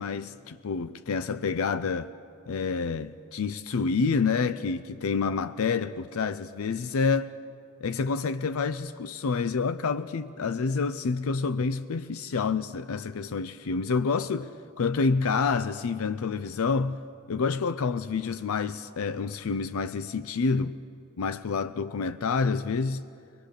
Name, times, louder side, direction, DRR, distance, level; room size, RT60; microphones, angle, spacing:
voice 1, 0.0-2.1 2.5-7.3 7.8-17.0 17.3-23.0, left 4 dB, 70° left, 0.5 m, -28 dB
24.0 x 20.5 x 6.5 m
head